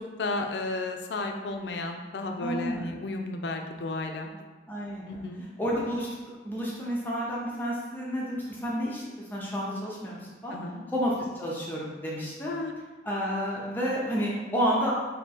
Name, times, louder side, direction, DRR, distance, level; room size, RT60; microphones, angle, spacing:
voice 1, 0.2-4.3 5.1-5.4 10.5-10.8 12.5-12.7, left 2 dB, 70° left, 4 dB, 0.4 m, -33 dB
voice 2, 2.4-3.0 4.7-5.2 5.6-6.1 6.4-10.5 10.9-12.5 13.0-14.9, equal, 10° left, -5 dB, 0.5 m, -30 dB
3.5 x 2.7 x 4.1 m, 1.2 s
head